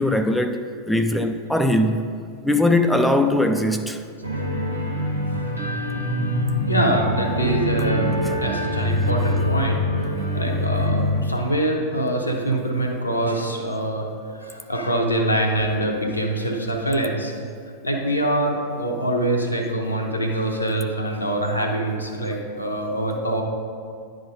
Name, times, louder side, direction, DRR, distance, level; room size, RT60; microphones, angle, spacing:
voice 1, 0.0-2.1 2.4-4.0 8.2-8.4 10.0-10.2 10.4-10.5, left 1 dB, 5° left, 0.4 m, -21 dB
sound 1, 4.2-11.2, equal, 90° right, 1.2 m, -24 dB
voice 2, 6.3-8.1 8.4-14.1 14.4-17.3 17.8-23.4, right 1 dB, 85° left, 0.9 m, -24 dB
10.5 x 3.9 x 5.1 m
figure-of-eight pair, 90°, 0 cm